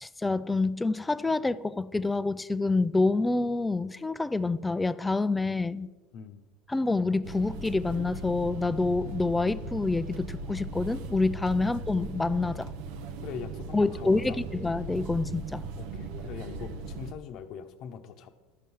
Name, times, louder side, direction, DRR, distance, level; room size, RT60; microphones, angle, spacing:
voice 1, 0.0-5.9 6.7-12.7 13.7-15.6, left 3 dB, 10° left, 0.4 m, -27 dB
sound 1, 7.2-17.1, right 2 dB, 70° right, 0.8 m, -38 dB
voice 2, 13.2-14.4 15.8-18.3, left 7 dB, 55° left, 0.9 m, -42 dB
12.5 x 5.5 x 6.1 m
hypercardioid pair, 85°, 0 cm